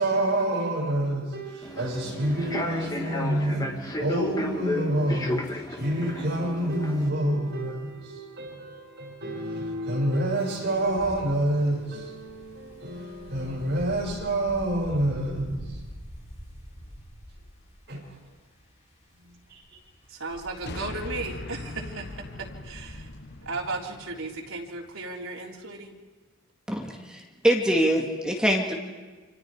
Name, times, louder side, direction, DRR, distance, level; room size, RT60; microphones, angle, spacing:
voice 1, 0.0-15.9 17.9-18.0 19.2-19.6, right 1 dB, 55° right, 7.0 m, -28 dB
Human voice / Subway metro underground, 1.6-7.1, left 1 dB, 20° left, 1.8 m, -33 dB
Wind, 10.6-23.8, equal, 35° left, 7.7 m, -46 dB
voice 2, 20.1-23.1 23.4-25.9, right 3 dB, 85° right, 3.7 m, -35 dB
sound 1, 20.7-25.1, left 2 dB, 55° left, 1.0 m, -40 dB
voice 3, 26.7-28.7, right 1 dB, 5° right, 2.2 m, -24 dB
29.5 x 26.5 x 5.0 m
head